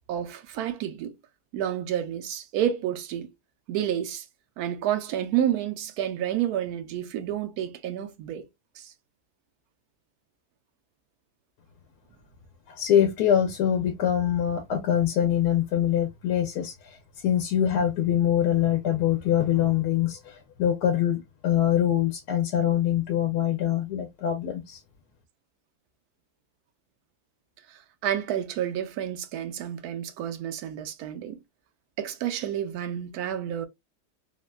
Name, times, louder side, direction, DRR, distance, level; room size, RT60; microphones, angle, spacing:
voice 1, 0.1-1.1 1.5-3.3 3.7-4.2 4.6-8.5 8.8-8.9 27.7-31.4 32.0-33.7, right 10 dB, 80° right, 1.1 m, -30 dB
voice 2, 12.7-24.8, left 10 dB, 90° left, 1.1 m, -24 dB
3.5 x 2.1 x 2.2 m
omnidirectional pair, 1.6 m